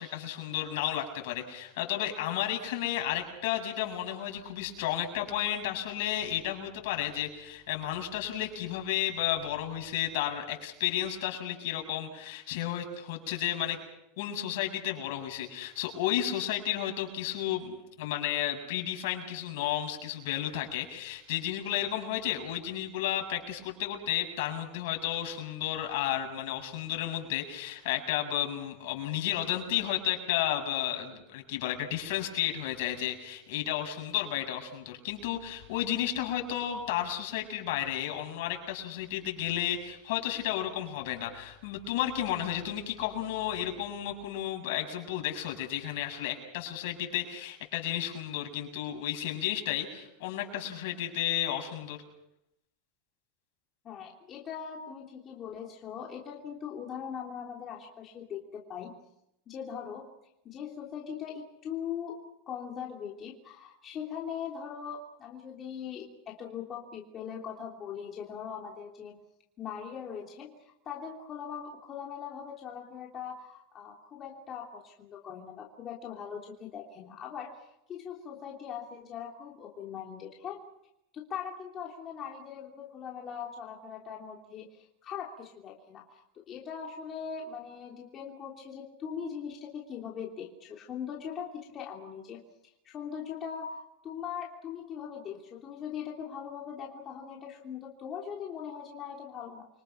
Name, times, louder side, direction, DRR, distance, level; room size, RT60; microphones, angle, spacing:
voice 1, 0.0-13.8 14.2-52.0, left 12 dB, 60° left, 3 dB, 7.5 m, -32 dB
voice 2, 53.8-58.9 59.5-60.1 60.4-62.2 62.5-69.2 69.6-80.6 81.1-92.4 92.8-99.7, left 7 dB, 25° left, -1 dB, 3.2 m, -41 dB
30.0 x 25.0 x 5.9 m, 0.84 s
supercardioid pair, 155°, 0 cm